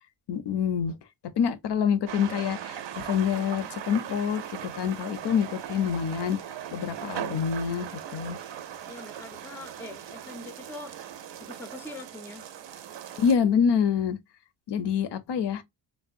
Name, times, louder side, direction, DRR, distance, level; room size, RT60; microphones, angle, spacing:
voice 1, 0.3-0.9 1.4-6.4 6.7-8.4 13.2-14.2 14.7-15.6, left 7 dB, 60° left, 0.5 m, -26 dB
sound 1, 2.1-13.3, right 10 dB, 70° right, 0.6 m, -39 dB
voice 2, 8.9-10.9 11.4-12.4, left 2 dB, 5° left, 0.4 m, -43 dB
3.6 x 2.1 x 2.4 m
wide cardioid pair, 120°, 46 cm